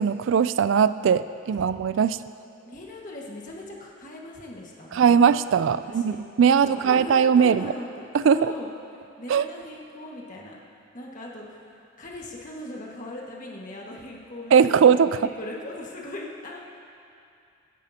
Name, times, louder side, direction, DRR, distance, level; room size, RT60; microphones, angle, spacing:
voice 1, 0.0-2.2 4.9-7.7 8.1-8.5 9.3-9.4 14.5-15.2, right 7 dB, 65° right, 14 dB, 0.3 m, -20 dB
voice 2, 2.6-5.2 5.8-6.2 6.6-8.7 9.2-10.6 10.9-15.0 15.4-16.6, left 1 dB, 40° left, -2 dB, 1.6 m, -39 dB
25.5 x 10.0 x 2.8 m, 2.5 s
head